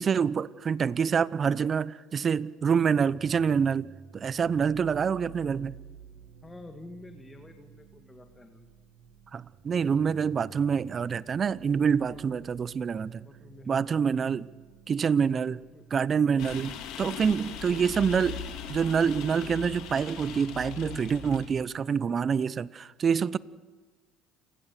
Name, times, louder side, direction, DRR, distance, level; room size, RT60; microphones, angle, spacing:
voice 1, 0.0-3.9 4.1-5.8 9.3-13.3 13.7-14.5 14.9-15.6 15.9-18.4 18.7-23.4, right 6 dB, 40° right, 0.7 m, -26 dB
sound 1, 2.6-16.3, right 7 dB, 65° right, 2.5 m, -52 dB
voice 2, 6.4-8.7 11.7-11.8 12.1-12.2 13.2-14.2 15.5-15.8 16.2-17.8, left 2 dB, 15° left, 2.0 m, -49 dB
sound 2, 16.4-21.5, left 8 dB, 65° left, 3.4 m, -39 dB
29.0 x 17.0 x 6.8 m
hypercardioid pair, 75°, 0 cm